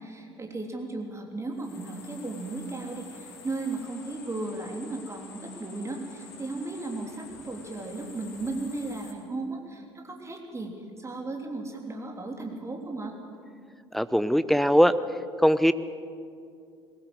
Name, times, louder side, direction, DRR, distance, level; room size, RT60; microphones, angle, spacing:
voice 1, 0.0-13.1, right 2 dB, 20° right, 2 dB, 3.3 m, -35 dB
sound 1, 1.5-9.1, left 5 dB, 65° left, 3.0 m, -48 dB
voice 2, 13.9-15.0 15.4-15.7, equal, ahead, 14 dB, 0.8 m, -20 dB
21.5 x 18.0 x 8.0 m, 2.3 s
figure-of-eight pair, 60°, 14 cm